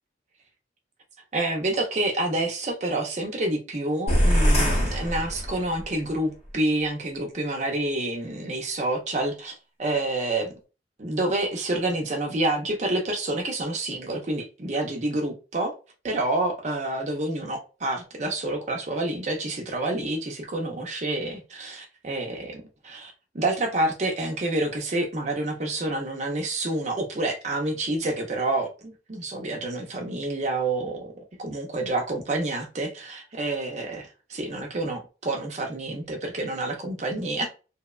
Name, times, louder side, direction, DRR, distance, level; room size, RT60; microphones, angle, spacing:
voice 1, 1.3-10.5 11.0-15.7 16.0-31.1 31.4-37.5, right 2 dB, 40° right, 0.5 m, -28 dB
sound 1, 4.1-5.9, equal, 35° left, 0.8 m, -22 dB
2.8 x 2.1 x 2.3 m
head